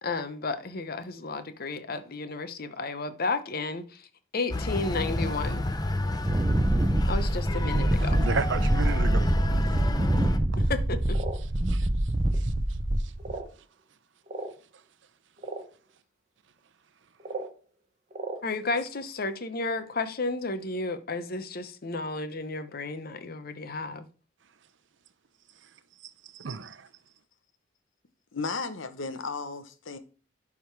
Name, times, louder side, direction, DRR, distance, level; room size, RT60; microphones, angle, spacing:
voice 1, 0.0-3.9 4.3-5.6 7.1-8.2 10.7-11.2 18.4-24.0, left 3 dB, 50° left, 0.8 m, -32 dB
sound 1, 4.5-10.4, left 1 dB, 20° left, 0.6 m, -29 dB
Wind, 6.2-13.4, right 1 dB, 20° right, 0.6 m, -26 dB
voice 2, 8.0-9.3 11.7-11.9 26.3-26.8, right 5 dB, 70° right, 0.6 m, -32 dB
sound 2, 11.1-11.4 12.3-12.4 13.2-13.5 14.3-14.5 15.4-15.6 17.2-17.5 18.1-18.4, right 3 dB, 35° right, 1.2 m, -36 dB
voice 3, 28.3-30.0, left 4 dB, 85° left, 0.9 m, -34 dB
11.0 x 3.7 x 4.6 m
head